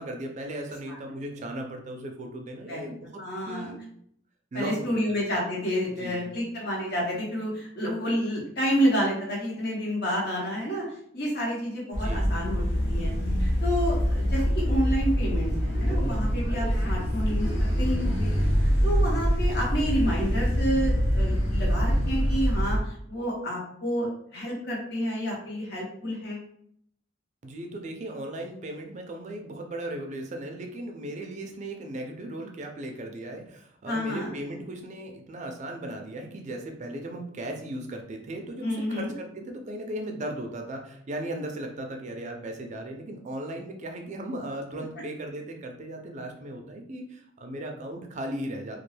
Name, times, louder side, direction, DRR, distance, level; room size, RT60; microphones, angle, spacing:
voice 1, 0.0-3.8 4.5-5.0 6.0-6.2 12.0-12.3 27.4-48.8, right 1 dB, 40° right, 3 dB, 0.4 m, -37 dB
voice 2, 3.2-3.7 4.5-10.8 11.1-13.1 13.4-17.5 17.8-18.3 18.8-22.8 23.1-26.4 33.8-34.3 38.6-39.1, equal, 60° left, -2 dB, 1.0 m, -29 dB
sound 1, 11.9-22.8, equal, 75° left, 0.7 m, -25 dB
2.3 x 2.1 x 3.1 m, 0.67 s
head